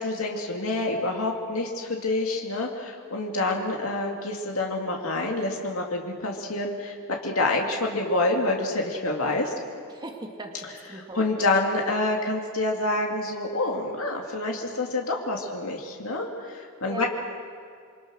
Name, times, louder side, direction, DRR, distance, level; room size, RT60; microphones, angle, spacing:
voice 1, 0.0-9.5 11.1-17.0, left 2 dB, 75° left, 1 dB, 2.4 m, -27 dB
voice 2, 9.9-11.3 16.9-17.0, right 2 dB, 20° right, 1 dB, 2.2 m, -39 dB
28.0 x 24.5 x 6.3 m, 2.2 s
head